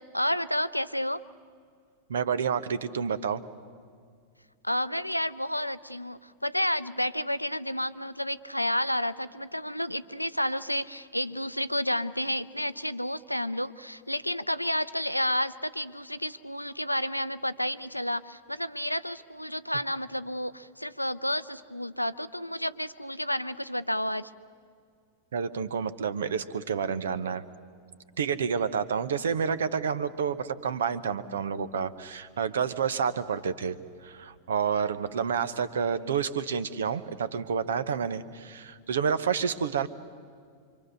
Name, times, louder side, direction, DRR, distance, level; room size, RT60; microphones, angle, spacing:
voice 1, 0.1-1.2 4.6-24.3, equal, 90° left, 15 dB, 0.6 m, -31 dB
voice 2, 2.1-3.4 25.3-27.4 28.2-33.8 34.0-39.9, right 6 dB, 65° right, 15 dB, 1.0 m, -29 dB
26.5 x 25.0 x 6.6 m, 2.1 s
figure-of-eight pair, 90°, 0 cm